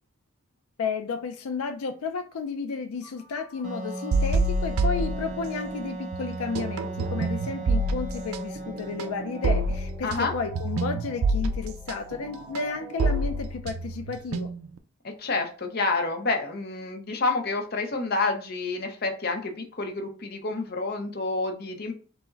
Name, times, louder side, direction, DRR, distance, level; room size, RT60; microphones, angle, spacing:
voice 1, 0.8-14.5, left 4 dB, 80° left, 7 dB, 0.4 m, -32 dB
sound 1, 3.0-13.8, right 1 dB, ahead, 0.6 m, -49 dB
Wind instrument woodwind instrument, 3.6-10.1, right 2 dB, 35° right, 0.7 m, -37 dB
sound 2, 4.1-5.8 6.1-14.8, right 2 dB, 75° right, 0.4 m, -27 dB
voice 2, 10.0-10.3 15.0-21.9, left 3 dB, 45° left, 4 dB, 0.7 m, -28 dB
4.6 x 2.1 x 3.8 m, 0.39 s
head